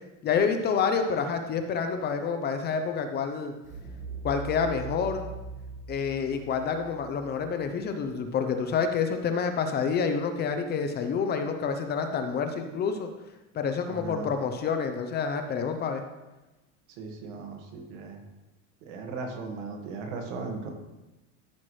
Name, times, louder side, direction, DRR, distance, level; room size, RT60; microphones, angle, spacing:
voice 1, 0.2-3.5 4.2-5.3 5.9-13.1 13.5-16.0, left 6 dB, 25° left, 7 dB, 0.6 m, -28 dB
sound 1, 3.6-8.5, right 4 dB, 20° right, 1.8 m, -41 dB
voice 2, 13.9-14.3 17.0-18.2 18.8-20.7, right 4 dB, 80° right, 3 dB, 1.8 m, -37 dB
14.0 x 5.8 x 3.2 m, 1.1 s
cardioid pair, 155°, 37 cm